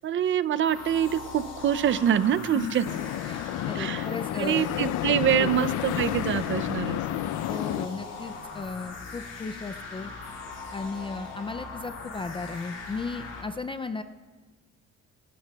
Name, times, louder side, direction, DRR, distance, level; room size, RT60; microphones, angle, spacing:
voice 1, 0.0-2.9 3.8-4.0 4.4-7.2, right 9 dB, 45° right, 15 dB, 0.5 m, -25 dB
sound 1, 0.6-13.4, left 4 dB, 60° left, 2.8 m, -40 dB
sound 2, 2.8-7.9, left 13 dB, 85° left, 0.5 m, -30 dB
voice 2, 3.3-4.7 5.4-5.5 7.5-10.1 10.7-14.0, left 4 dB, 20° left, 9 dB, 0.3 m, -35 dB
29.0 x 12.5 x 2.3 m, 1.3 s
cardioid pair, 155°, 29 cm